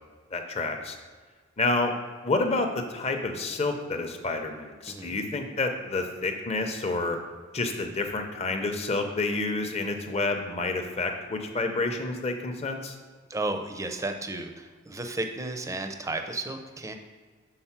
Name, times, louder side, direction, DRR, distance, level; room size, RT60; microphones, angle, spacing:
voice 1, 0.3-1.0 1.6-1.9 2.2-7.2 7.5-13.0, left 3 dB, 30° left, 5 dB, 0.6 m, -29 dB
voice 2, 4.9-5.2 13.3-16.9, right 2 dB, 15° right, 6 dB, 0.5 m, -33 dB
5.6 x 4.0 x 5.7 m, 1.5 s
head